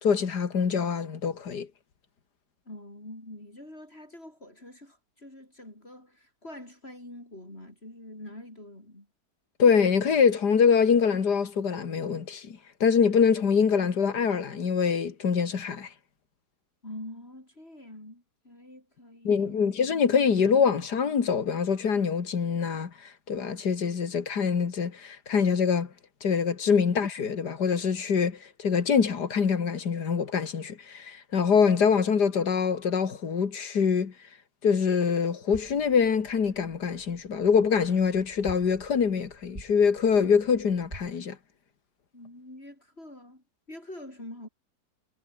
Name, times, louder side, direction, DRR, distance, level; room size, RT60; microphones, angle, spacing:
voice 1, 0.0-1.7 9.6-15.9 19.2-25.9 26.2-34.1 34.6-41.4, left 6 dB, 80° left, 2.5 m, -24 dB
voice 2, 2.7-9.1 16.8-19.5 42.1-44.5, left 1 dB, 40° left, 7.4 m, -45 dB
sound 1, 35.5-41.1, right 2 dB, 30° right, 4.5 m, -48 dB
omnidirectional pair, 1.7 m